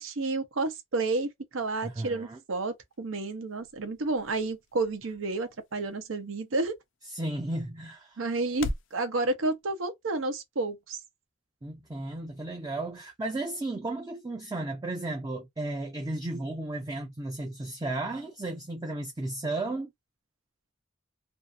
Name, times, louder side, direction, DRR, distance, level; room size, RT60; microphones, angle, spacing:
voice 1, 0.0-6.8 8.2-11.0, right 3 dB, 80° right, 0.7 m, -31 dB
voice 2, 1.8-2.4 7.1-8.2 11.6-19.9, right 2 dB, 20° right, 0.4 m, -34 dB
sound 1, 2.7-9.0, left 2 dB, 65° left, 0.4 m, -44 dB
2.6 x 2.4 x 2.4 m
head